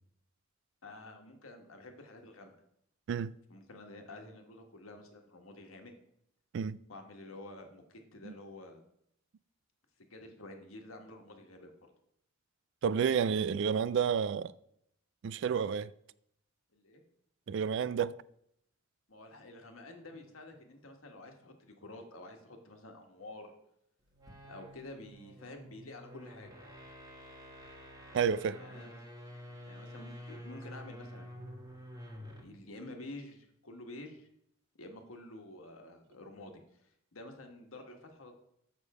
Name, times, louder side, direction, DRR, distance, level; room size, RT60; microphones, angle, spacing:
voice 1, 0.8-2.5 3.5-5.9 6.9-8.8 10.0-11.7 16.7-17.0 19.1-23.5 24.5-26.5 28.6-29.0 29.7-31.3 32.4-34.3 34.8-36.5 36.8-38.3, left 2 dB, 85° left, 1.4 m, -49 dB
voice 2, 12.8-14.5 15.2-15.9 17.5-18.2 28.1-28.6, right 7 dB, 60° right, 0.3 m, -30 dB
sound 1, 24.1-32.6, equal, 20° right, 1.4 m, -49 dB
7.1 x 6.5 x 4.8 m
head